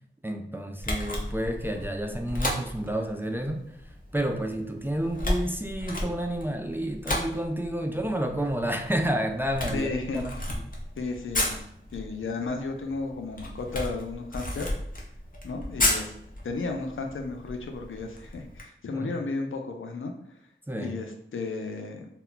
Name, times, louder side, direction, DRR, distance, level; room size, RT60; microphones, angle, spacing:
voice 1, 0.2-10.7 18.9-19.2 20.7-21.0, right 1 dB, 10° right, 4 dB, 0.3 m, -30 dB
Camera, 0.8-18.6, left 1 dB, 40° left, 0.7 m, -34 dB
voice 2, 9.7-10.3 11.0-11.6 11.9-14.7 15.4-16.1 16.4-20.1 20.7-22.1, left 3 dB, 75° left, 4 dB, 0.4 m, -33 dB
2.2 x 2.2 x 3.7 m, 0.74 s
cardioid pair, 40°, 21 cm